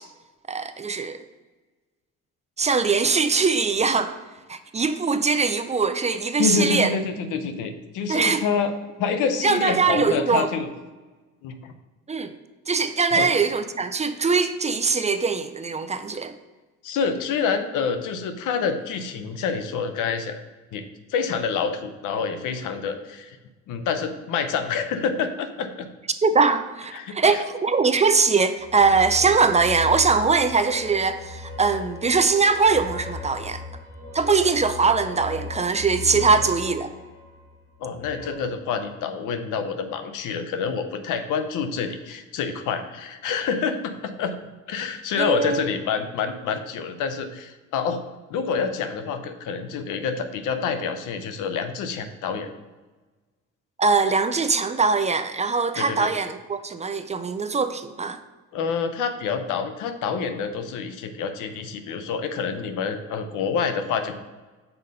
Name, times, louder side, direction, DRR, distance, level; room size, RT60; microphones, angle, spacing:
voice 1, 0.5-1.2 2.6-4.1 4.5-7.0 8.1-8.4 9.4-10.5 12.1-12.4 12.7-16.3 26.2-33.6 34.1-36.9 45.2-45.7 53.8-58.2, right 4 dB, 25° right, 10 dB, 0.4 m, -22 dB
voice 2, 6.4-8.7 9.0-10.7 11.4-11.7 13.1-13.3 16.8-20.4 20.7-20.8 21.1-23.4 23.7-25.9 26.9-27.4 36.0-36.3 37.8-44.3 44.7-48.0 48.3-52.5 55.8-56.1 58.5-64.2, left 6 dB, 90° left, 9 dB, 0.7 m, -27 dB
sound 1, 28.6-38.3, left 3 dB, 5° left, 2.2 m, -37 dB
5.8 x 3.9 x 5.2 m, 1.2 s
cardioid pair, 90°, 30 cm